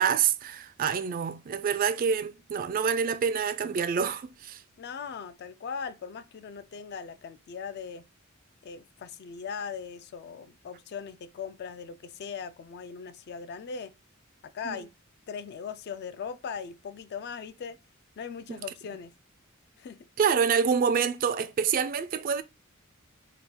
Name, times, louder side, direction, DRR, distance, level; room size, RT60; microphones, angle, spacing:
voice 1, 0.0-4.6 14.6-14.8 18.5-18.6 20.2-22.4, right 7 dB, 40° right, 0.3 m, -27 dB
voice 2, 4.8-8.1 8.6-13.9 14.4-14.9 15.3-17.8 18.2-19.1 19.8-20.1, left 6 dB, 50° left, 0.3 m, -39 dB
3.5 x 2.3 x 4.4 m
head